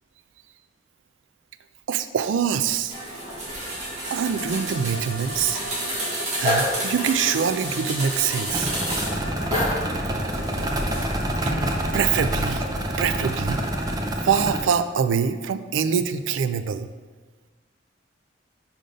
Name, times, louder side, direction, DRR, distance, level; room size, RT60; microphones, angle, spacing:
voice 1, 1.9-2.9 4.1-5.6 6.4-8.7 11.4-11.5 11.9-12.6 13.0-13.6 14.2-16.9, right 7 dB, 85° right, 11 dB, 0.4 m, -24 dB
sound 1, 2.9-11.3, equal, 35° right, 1.3 m, -29 dB
sound 2, 8.5-14.6, right 1 dB, 20° right, 0.5 m, -27 dB
5.0 x 3.9 x 5.1 m, 1.4 s
head